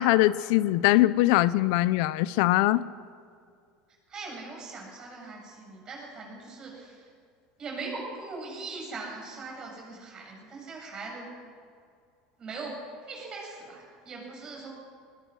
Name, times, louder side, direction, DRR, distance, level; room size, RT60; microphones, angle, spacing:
voice 1, 0.0-2.8, left 16 dB, 70° left, 17 dB, 0.6 m, -22 dB
voice 2, 4.1-7.1 7.6-11.3 12.4-12.8 13.1-14.7, right 3 dB, 30° right, 0 dB, 7.7 m, -40 dB
21.5 x 20.0 x 6.4 m, 2.3 s
supercardioid pair, 140°, 3 cm